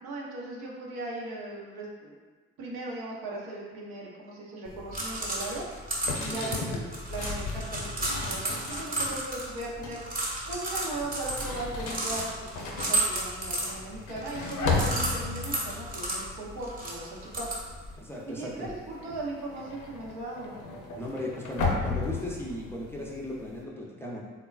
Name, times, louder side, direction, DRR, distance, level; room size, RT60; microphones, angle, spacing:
voice 1, 0.0-2.2 2.6-5.7 6.2-6.8 7.1-10.0 10.5-17.6 18.3-20.6, right 2 dB, 70° right, -4 dB, 0.7 m, -38 dB
sound 1, 4.7-18.0, right 1 dB, 25° right, 0.8 m, -34 dB
sound 2, 6.0-9.2 9.6-10.1 11.0-17.2 17.5-17.9 18.1-23.6, left 3 dB, 60° left, 0.6 m, -35 dB
voice 2, 6.3-6.7 18.0-18.7 20.9-24.2, left 1 dB, 5° left, -4 dB, 0.5 m, -37 dB
3.3 x 2.2 x 2.3 m, 1.4 s
hypercardioid pair, 45°, 35 cm